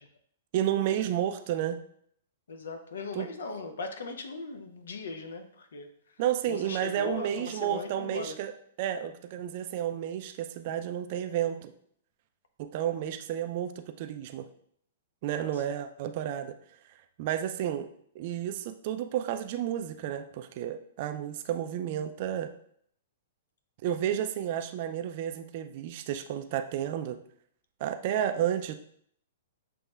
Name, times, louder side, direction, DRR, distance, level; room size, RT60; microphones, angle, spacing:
voice 1, 0.5-1.8 3.1-3.3 6.2-8.5 8.8-11.7 12.6-14.5 15.2-16.5 17.2-17.9 18.1-22.5 23.8-27.2 27.8-28.7, right 10 dB, 45° right, 8 dB, 0.4 m, -31 dB
voice 2, 2.5-5.9 6.5-8.4 15.3-15.5, left 3 dB, 65° left, 6 dB, 0.6 m, -39 dB
7.0 x 3.0 x 2.4 m, 0.64 s
figure-of-eight pair, 110°, 0 cm